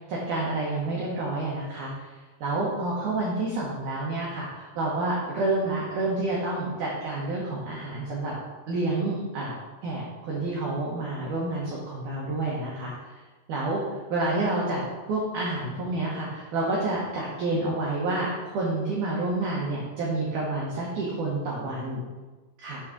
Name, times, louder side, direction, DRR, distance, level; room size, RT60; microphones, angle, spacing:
voice 1, 0.1-2.1 2.4-8.3 8.7-9.5 9.8-12.9 13.5-22.0 22.6-22.8, right 2 dB, 70° right, -4 dB, 2.0 m, -29 dB
8.6 x 3.9 x 6.0 m, 1.3 s
omnidirectional pair, 5.1 m